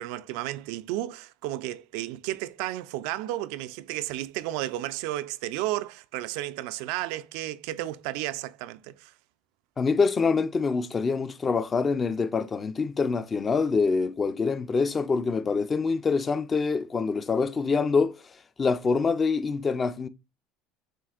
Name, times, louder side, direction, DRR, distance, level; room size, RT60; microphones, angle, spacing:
voice 1, 0.0-9.1, right 15 dB, 75° right, 0.3 m, -33 dB
voice 2, 9.8-18.2 18.6-20.1, left 4 dB, 30° left, 0.5 m, -25 dB
7.4 x 2.5 x 2.4 m
supercardioid pair, 100°, 0 cm